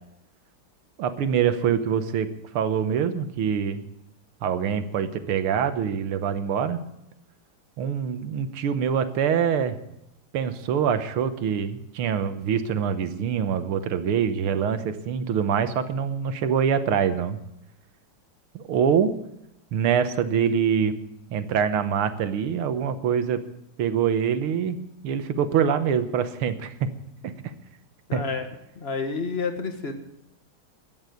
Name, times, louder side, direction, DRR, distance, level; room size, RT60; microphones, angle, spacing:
voice 1, 1.0-2.3 2.5-3.8 4.4-6.8 7.8-9.8 10.3-17.4 18.6-19.2 19.7-21.0 21.3-23.4 23.8-24.8 25.0-26.9 28.1-28.2, right 7 dB, 85° right, 11 dB, 2.0 m, -24 dB
voice 2, 28.1-28.5 28.7-29.9, left 4 dB, 35° left, 6 dB, 1.5 m, -29 dB
13.0 x 9.5 x 9.3 m, 0.84 s
omnidirectional pair, 2.3 m